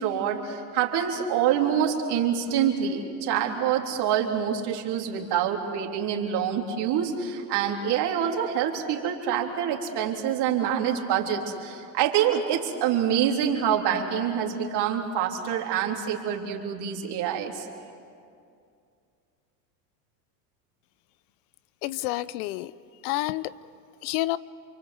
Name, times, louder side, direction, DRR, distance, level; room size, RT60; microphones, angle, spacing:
voice 1, 0.0-17.7, right 8 dB, 55° right, 1 dB, 3.8 m, -26 dB
voice 2, 21.8-22.7 23.0-23.5 24.0-24.4, left 17 dB, 65° left, 18 dB, 0.8 m, -28 dB
29.0 x 24.0 x 7.9 m, 2.4 s
supercardioid pair, 105°, 49 cm